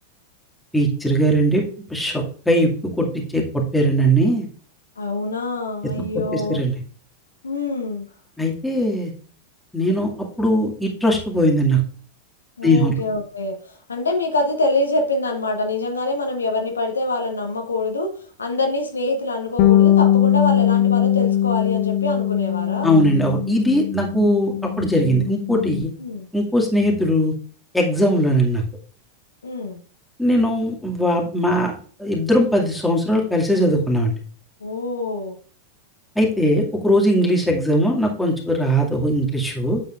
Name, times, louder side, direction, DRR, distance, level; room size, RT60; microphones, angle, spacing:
voice 1, 0.7-1.6 1.9-2.7 3.0-3.4 3.7-4.5 6.3-6.8 8.4-9.1 9.7-10.1 10.4-11.8 12.6-12.9 22.8-25.9 26.3-27.3 27.7-28.6 30.2-34.2 36.2-39.8, equal, 5° left, -2 dB, 2.3 m, -19 dB
voice 2, 5.0-6.6 7.4-8.1 12.6-22.9 26.0-26.3 29.4-29.8 34.6-35.3, left 2 dB, 75° left, 4 dB, 1.2 m, -25 dB
Bass guitar, 19.6-25.8, left 11 dB, 45° left, 0.6 m, -20 dB
9.2 x 7.6 x 2.5 m, 0.43 s
figure-of-eight pair, 90°, 0 cm